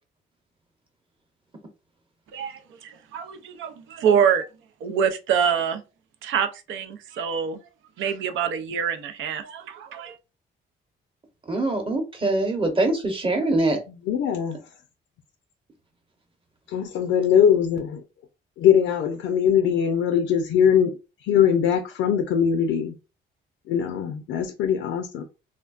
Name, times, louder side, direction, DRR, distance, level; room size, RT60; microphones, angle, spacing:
voice 1, 2.3-4.5 4.8-5.8 6.2-7.6 8.0-10.2, right 7 dB, 80° right, 0.5 m, -25 dB
voice 2, 11.5-13.8, right 2 dB, 25° right, 1.0 m, -23 dB
voice 3, 14.1-14.6 16.7-18.0 18.6-20.9 21.3-22.9 23.7-25.2, left 8 dB, 90° left, 0.5 m, -21 dB
3.3 x 2.2 x 2.4 m
cardioid pair, 90°, 20 cm